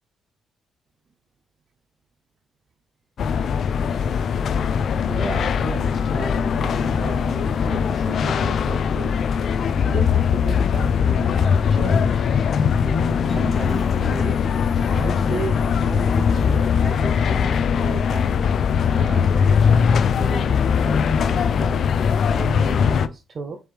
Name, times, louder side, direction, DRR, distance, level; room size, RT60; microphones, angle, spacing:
sound 1, 3.2-23.1, left 7 dB, 60° left, 0.3 m, -20 dB
voice 1, 5.1-9.2 9.8-12.3 12.7-14.4 14.9-18.4 18.8-20.6 20.8-21.8 22.2-23.6, right 4 dB, 45° right, 6 dB, 0.5 m, -34 dB
sound 2, 8.4-16.7, equal, 25° right, 2.4 m, -40 dB
4.5 x 3.3 x 3.3 m, 0.30 s
cardioid pair, 90°, 0 cm